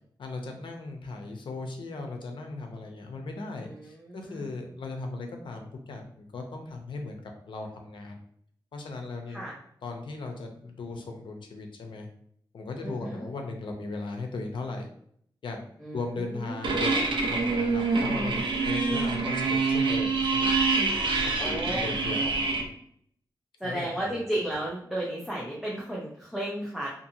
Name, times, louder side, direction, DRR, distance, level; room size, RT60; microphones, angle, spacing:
voice 1, 0.2-7.2 7.5-8.2 8.7-9.4 9.8-12.1 12.5-14.8 15.4-15.7 15.9-20.6 21.2-22.7 23.6-24.1, left 3 dB, 85° left, 3 dB, 0.5 m, -37 dB
voice 2, 3.6-4.5 9.3-9.5 12.8-13.2 15.8-16.9 21.4-21.8 22.1-22.2 23.6-26.9, right 1 dB, ahead, -5 dB, 0.5 m, -34 dB
sound 1, 16.6-22.6, right 3 dB, 80° right, 0.5 m, -26 dB
2.7 x 2.5 x 2.6 m, 0.66 s
wide cardioid pair, 155°, 8 cm